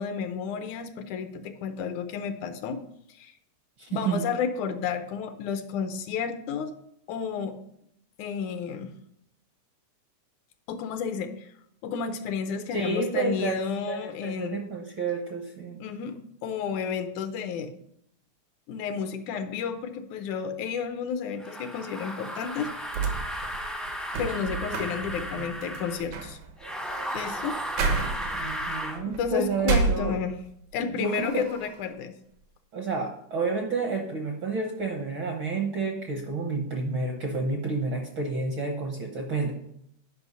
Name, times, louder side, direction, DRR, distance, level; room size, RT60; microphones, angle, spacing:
voice 1, 0.0-2.8 3.2-3.3 3.9-6.7 7.1-7.6 8.2-9.0 10.7-11.5 11.8-14.6 15.8-17.7 18.7-22.7 24.2-26.4 27.1-27.6 29.0-30.4 30.7-32.2, left 6 dB, 80° left, 8 dB, 2.2 m, -31 dB
voice 2, 3.8-4.3 12.7-15.8 28.3-30.1 31.0-31.4 32.7-39.5, right 3 dB, 65° right, 2 dB, 1.2 m, -30 dB
sound 1, 21.4-26.0 26.6-29.0, equal, ahead, 0.4 m, -35 dB
sound 2, 22.6-30.6 31.0-31.8, right 4 dB, 85° right, 2.6 m, -32 dB
9.5 x 5.5 x 5.4 m, 0.72 s
omnidirectional pair, 3.4 m